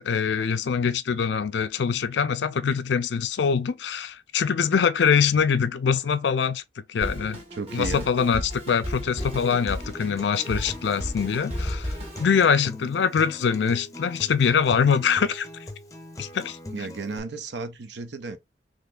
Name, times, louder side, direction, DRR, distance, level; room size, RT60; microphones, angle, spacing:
voice 1, 0.0-7.4 7.7-15.5 16.2-16.6, left 6 dB, 75° left, 0.4 m, -24 dB
Drum kit, 7.0-12.4, equal, 35° right, 1.3 m, -34 dB
voice 2, 7.5-8.1 16.7-18.4, right 3 dB, 75° right, 0.7 m, -33 dB
Acoustic guitar, 9.2-17.2, left 1 dB, 20° left, 0.5 m, -41 dB
3.9 x 3.1 x 2.4 m
head